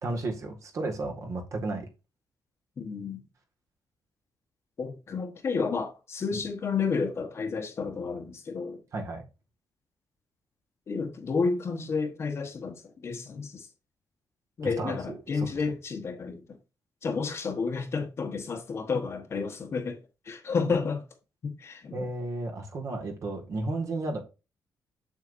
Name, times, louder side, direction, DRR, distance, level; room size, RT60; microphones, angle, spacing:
voice 1, 0.0-1.9 6.3-6.4 8.9-9.2 14.6-15.5 21.9-24.2, right 2 dB, 45° right, 1.8 m, -33 dB
voice 2, 2.8-3.2 4.8-8.8 10.9-13.7 14.6-16.4 17.0-20.0 20.3-21.0 21.4-22.1, left 5 dB, 35° left, 1.2 m, -31 dB
7.4 x 7.3 x 2.6 m
wide cardioid pair, 170°, 7 cm